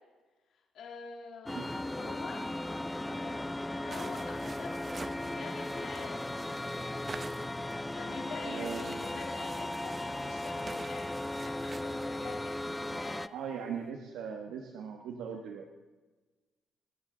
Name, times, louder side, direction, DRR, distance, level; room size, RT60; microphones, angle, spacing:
voice 1, 0.7-1.5 1.8-2.4 3.1-4.8 5.2-6.3 7.9-11.1 11.7-13.3, left 5 dB, 70° left, -2 dB, 3.2 m, -46 dB
sound 1, 1.5-13.3, left 1 dB, 10° left, 0.4 m, -37 dB
sound 2, 3.9-7.9 8.5-12.2, right 3 dB, 30° right, 1.0 m, -48 dB
voice 2, 8.4-9.2 13.3-15.7, right 7 dB, 85° right, 2 dB, 1.3 m, -40 dB
28.5 x 10.5 x 3.9 m, 1.2 s
cardioid pair, 90°, 0 cm